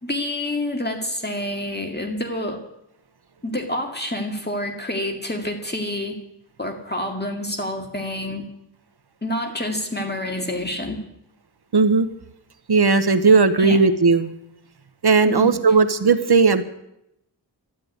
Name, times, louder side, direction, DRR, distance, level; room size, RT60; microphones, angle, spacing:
voice 1, 0.0-2.6 3.4-6.2 6.6-8.5 9.2-11.0 13.6-13.8 15.3-15.6, left 1 dB, 25° left, 3 dB, 2.2 m, -28 dB
voice 2, 11.7-12.1 12.7-14.3 15.0-16.6, right 4 dB, 65° right, 10 dB, 1.0 m, -16 dB
13.0 x 10.5 x 9.5 m, 0.80 s
wide cardioid pair, 75°, 43 cm